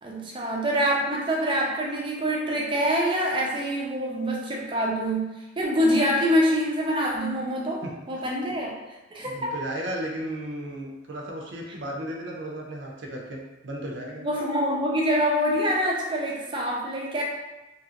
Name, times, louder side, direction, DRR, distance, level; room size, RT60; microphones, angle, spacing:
voice 1, 0.0-5.3 5.6-8.7 9.1-9.5 14.2-17.2, equal, 25° right, -2 dB, 0.5 m, -25 dB
voice 2, 9.2-14.3, right 1 dB, 75° right, -1 dB, 0.6 m, -34 dB
2.9 x 2.4 x 2.8 m, 1.0 s
head